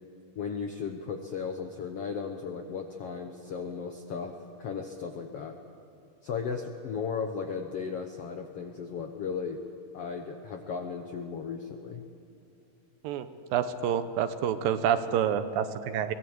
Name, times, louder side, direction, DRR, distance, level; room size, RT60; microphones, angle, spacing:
voice 1, 0.3-4.3 4.6-5.5 6.2-9.6 9.9-12.0, left 6 dB, 90° left, 4 dB, 1.3 m, -35 dB
voice 2, 13.5-16.1, right 9 dB, 75° right, 10 dB, 2.5 m, -28 dB
24.0 x 19.0 x 7.9 m, 2.7 s
omnidirectional pair, 4.4 m